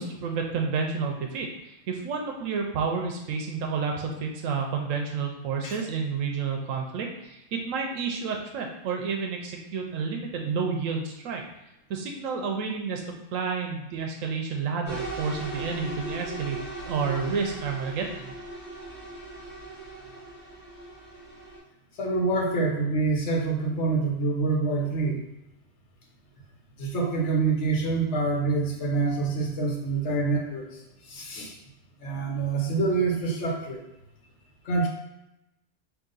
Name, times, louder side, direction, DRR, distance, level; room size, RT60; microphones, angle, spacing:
voice 1, 0.0-11.4 11.9-13.0 13.3-16.6 16.9-18.3, right 5 dB, 85° right, 2 dB, 1.0 m, -30 dB
sound 1, 14.9-21.6, right 2 dB, 10° left, 1.2 m, -38 dB
voice 2, 22.0-25.2 26.8-30.7 31.1-31.6 32.0-33.8 34.6-34.9, right 3 dB, 65° left, 1 dB, 1.1 m, -26 dB
3.8 x 2.5 x 3.8 m, 0.88 s
omnidirectional pair, 1.3 m